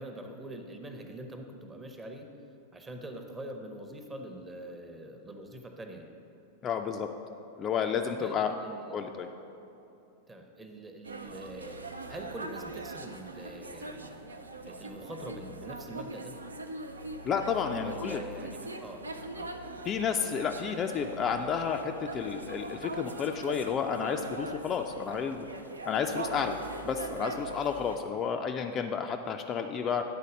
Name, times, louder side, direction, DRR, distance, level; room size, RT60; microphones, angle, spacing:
voice 1, 0.0-2.3 2.7-6.1 8.2-9.2 10.3-14.2 14.6-16.4 17.8-19.1 19.3-19.5 26.4-26.6, right 1 dB, 15° right, 4 dB, 0.7 m, -44 dB
voice 2, 6.6-7.1 7.6-8.5 8.9-9.3 17.2-18.2 19.8-25.4 25.9-26.6 26.8-30.0, left 7 dB, 30° left, 5 dB, 0.3 m, -31 dB
sound 1, 11.0-28.0, right 2 dB, 80° right, 0.4 m, -41 dB
9.4 x 4.0 x 5.1 m, 2.9 s
figure-of-eight pair, 90°, 0 cm